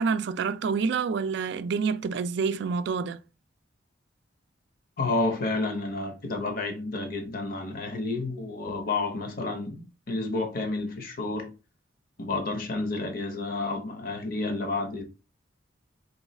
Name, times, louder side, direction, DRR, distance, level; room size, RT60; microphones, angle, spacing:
voice 1, 0.0-3.2, right 5 dB, 60° right, 0.3 m, -27 dB
voice 2, 5.0-11.5 12.2-15.0, left 2 dB, 45° left, 0.8 m, -30 dB
3.8 x 2.3 x 4.1 m
head